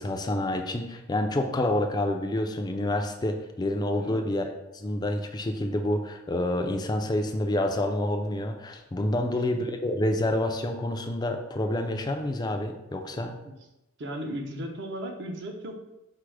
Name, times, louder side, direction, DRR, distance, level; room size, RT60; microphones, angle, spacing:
voice 1, 0.0-13.3, left 1 dB, 20° left, 4 dB, 0.3 m, -28 dB
voice 2, 14.0-15.8, right 1 dB, 55° right, 3 dB, 0.6 m, -36 dB
4.6 x 2.0 x 4.7 m, 0.92 s
head